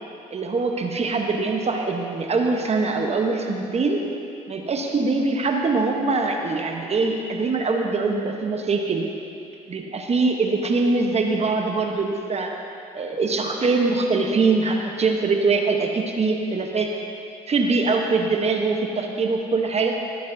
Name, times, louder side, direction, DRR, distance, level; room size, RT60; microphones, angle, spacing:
voice 1, 0.3-4.0 4.5-9.0 9.7-12.5 12.9-16.9 17.5-19.9, right 3 dB, 40° right, 2 dB, 1.0 m, -23 dB
16.5 x 8.4 x 2.7 m, 2.6 s
supercardioid pair, 65°, 17 cm